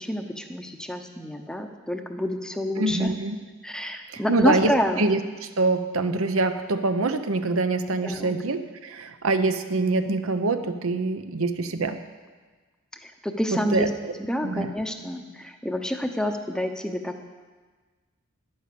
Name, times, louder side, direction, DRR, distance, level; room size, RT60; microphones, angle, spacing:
voice 1, 0.0-3.1 3.6-5.0 8.0-8.3 13.0-13.9 14.2-17.2, equal, 5° left, 5 dB, 0.7 m, -28 dB
voice 2, 2.8-3.4 4.1-4.7 5.0-5.2 5.6-12.0 13.7-13.9 14.4-14.7, right 3 dB, 75° right, 9 dB, 0.8 m, -24 dB
10.5 x 9.6 x 6.8 m, 1.4 s
head